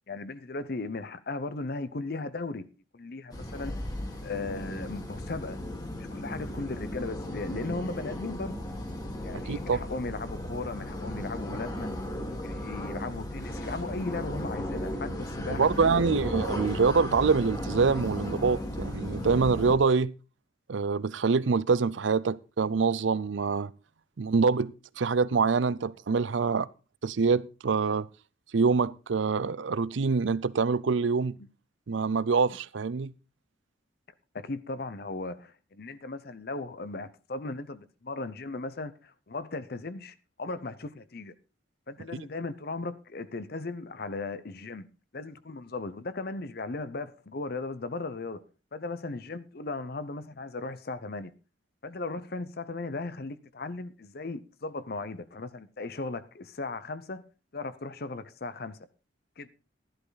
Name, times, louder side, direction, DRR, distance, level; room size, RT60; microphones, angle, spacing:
voice 1, 0.1-2.7 2.9-3.7 4.2-5.6 6.0-8.6 9.2-11.9 12.3-16.2 34.3-41.3 41.9-44.9 45.1-48.4 48.7-51.3 51.8-57.3 57.5-58.8 59.4-59.5, left 3 dB, 55° left, 0.7 m, -37 dB
sound 1, 3.3-19.8, left 1 dB, 20° left, 1.9 m, -35 dB
voice 2, 9.5-9.8 15.6-20.1 20.7-23.7 24.2-26.7 27.0-28.1 28.5-31.4 31.9-33.1, right 5 dB, 80° right, 0.5 m, -25 dB
13.0 x 11.5 x 4.0 m
head